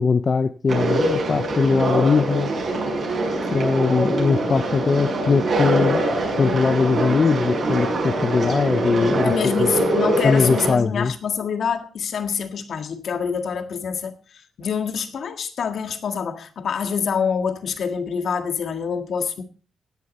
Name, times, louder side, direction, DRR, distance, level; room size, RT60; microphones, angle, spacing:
voice 1, 0.0-2.5 3.5-6.0 6.4-9.3 9.6-9.7 10.2-11.1, left 4 dB, 35° left, 0.5 m, -20 dB
Conversation, 0.7-10.7, right 1 dB, 50° right, 6.5 m, -23 dB
voice 2, 9.2-19.4, left 6 dB, 60° left, 1.7 m, -26 dB
16.5 x 10.5 x 4.2 m
wide cardioid pair, 145°, 0 cm